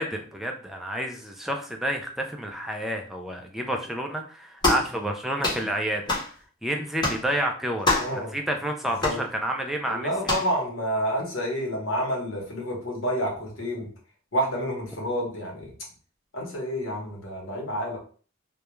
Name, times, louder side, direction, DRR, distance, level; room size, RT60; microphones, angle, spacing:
voice 1, 0.0-6.0 6.6-8.0 8.3-10.1, right 1 dB, ahead, 2 dB, 0.3 m, -29 dB
sound 1, 4.6-4.9 5.4-5.6 6.1-6.3 7.0-7.2 7.8-8.2 9.0-9.2 10.2-10.5, left 2 dB, 20° left, 0.8 m, -25 dB
voice 2, 8.0-8.3 9.0-9.2 9.8-13.9 14.3-15.7 16.3-18.0, equal, 75° left, -1 dB, 0.9 m, -29 dB
2.3 x 2.1 x 2.9 m, 0.41 s
head